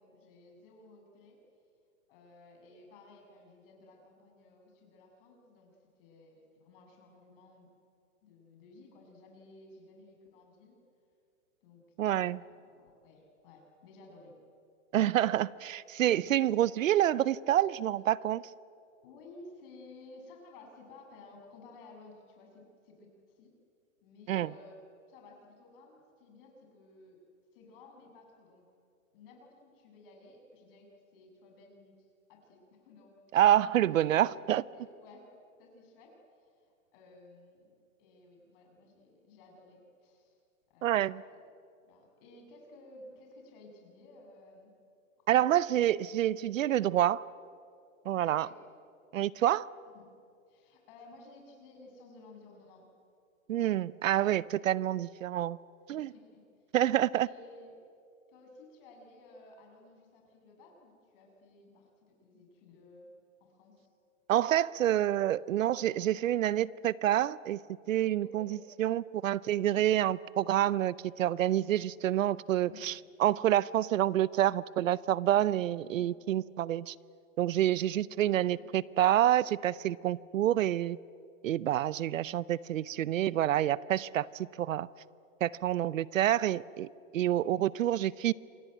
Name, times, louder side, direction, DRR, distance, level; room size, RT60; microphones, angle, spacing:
voice 1, 0.0-1.4 2.1-5.7 6.0-7.7 8.2-10.7 11.6-11.8 12.1-14.3 16.3-16.7 19.0-23.5 24.0-24.8 25.1-27.2 27.5-28.7 29.1-33.4 33.7-35.3 35.6-36.1 36.4-40.4 40.7-41.0 41.8-44.7 45.4-45.6 48.3-48.6 49.9-50.1 50.5-52.8 55.9-56.4 57.2-57.7 58.3-63.1 63.4-63.9 68.2-68.6 72.7-73.0 75.8-76.1 78.2-78.7 87.5-87.8, left 2 dB, 40° left, 1 dB, 7.7 m, -55 dB
voice 2, 12.0-12.4 14.9-18.4 24.3-24.5 33.3-34.6 40.8-41.2 45.3-47.2 48.1-48.5 49.1-49.7 53.5-55.6 55.9-56.1 56.7-57.3 64.3-67.6 67.9-76.9 77.4-81.0 81.4-84.9 85.4-86.9 87.1-88.3, right 12 dB, 70° right, 21 dB, 0.7 m, -28 dB
27.5 x 22.5 x 9.2 m, 2.4 s
hypercardioid pair, 150°, 41 cm